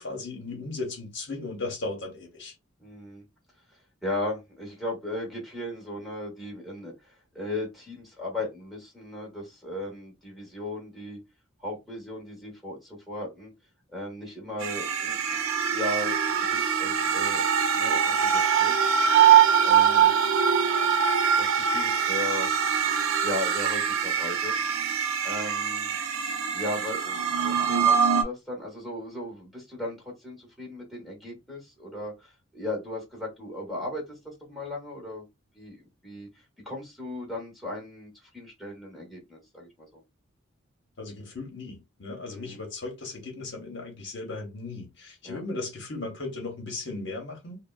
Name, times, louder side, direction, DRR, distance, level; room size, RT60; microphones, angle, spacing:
voice 1, 0.0-2.5 41.0-47.6, left 3 dB, 55° left, 1.0 m, -36 dB
voice 2, 2.8-3.2 4.0-6.9 7.3-11.2 11.6-13.5 13.9-15.4 15.7-17.5 17.7-18.7 19.6-20.1 21.4-22.5 23.2-24.5 25.2-26.0 26.5-35.2 35.5-36.3 36.6-40.0 42.3-42.6 45.2-45.4, left 1 dB, ahead, 1.0 m, -36 dB
sound 1, 14.6-28.2, right 7 dB, 70° right, 0.5 m, -23 dB
3.2 x 2.1 x 2.3 m
head